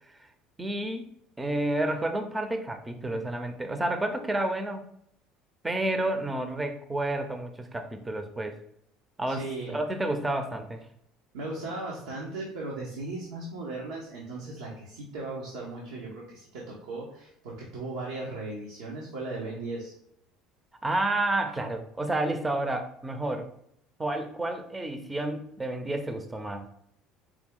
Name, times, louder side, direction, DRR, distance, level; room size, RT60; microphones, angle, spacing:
voice 1, 0.6-1.1 1.4-4.8 5.6-8.6 9.2-10.8 20.8-23.5 24.0-26.7, right 1 dB, 15° right, 7 dB, 0.6 m, -30 dB
voice 2, 9.3-9.7 11.3-19.9, right 2 dB, 90° right, -4 dB, 1.0 m, -37 dB
4.8 x 2.3 x 3.7 m, 0.74 s
supercardioid pair, 95°, 0 cm